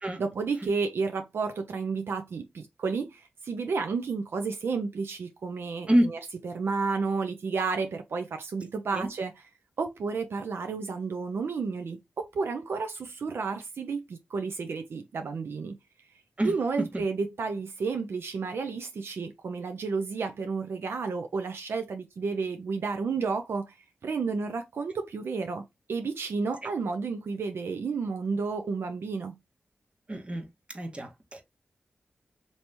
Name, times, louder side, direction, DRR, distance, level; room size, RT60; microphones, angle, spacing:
voice 1, 0.2-6.2 6.4-9.3 9.8-15.8 16.4-23.8 24.0-25.6 25.9-29.4, right 4 dB, 75° right, 0.4 m, -31 dB
voice 2, 16.4-16.9 26.6-26.7 30.1-30.5 30.7-31.4, right 1 dB, 30° right, 1.1 m, -27 dB
2.9 x 2.7 x 3.3 m
cardioid pair, 55°, 4 cm